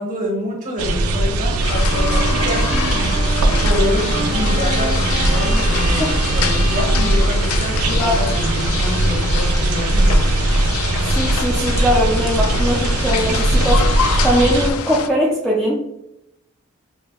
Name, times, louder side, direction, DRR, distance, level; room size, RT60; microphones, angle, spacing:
voice 1, 0.0-10.2, left 1 dB, 35° right, -2 dB, 1.0 m, -27 dB
sound 1, 0.8-14.7, right 2 dB, 85° right, 0.4 m, -19 dB
sound 2, 1.6-15.1, left 7 dB, 85° left, 0.3 m, -26 dB
Bowed string instrument, 1.8-8.1, right 2 dB, 65° right, 0.8 m, -30 dB
voice 2, 7.9-8.4 11.1-15.7, equal, ahead, -5 dB, 0.3 m, -20 dB
5.2 x 2.1 x 2.3 m, 0.84 s
head